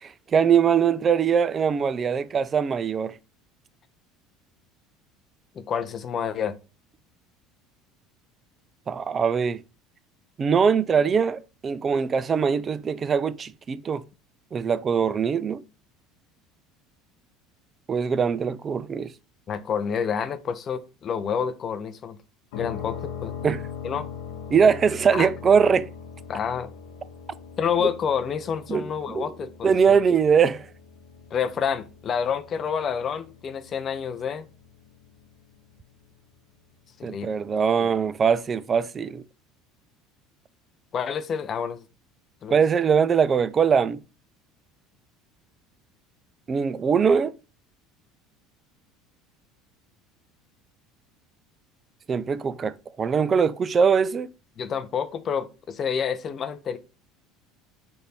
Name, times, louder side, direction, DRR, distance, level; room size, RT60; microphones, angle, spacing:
voice 1, 0.0-3.2 8.9-9.6 10.4-14.0 14.5-15.6 17.9-19.1 23.4-23.6 24.5-25.9 27.8-27.9 28.7-29.3 29.6-30.7 37.0-39.2 42.5-44.0 46.5-47.4 52.1-54.3, right 6 dB, 35° right, 0.3 m, -22 dB
voice 2, 5.5-6.6 19.5-22.2 22.5-23.3 23.8-24.1 25.1-25.3 26.3-26.7 27.6-30.0 31.3-34.5 37.0-37.3 37.8-37.9 40.9-41.8 42.4-42.6 54.6-56.8, left 7 dB, 40° left, 0.5 m, -28 dB
sound 1, 22.5-36.2, left 7 dB, 70° left, 0.8 m, -41 dB
3.3 x 2.6 x 4.2 m
hypercardioid pair, 75°, 0 cm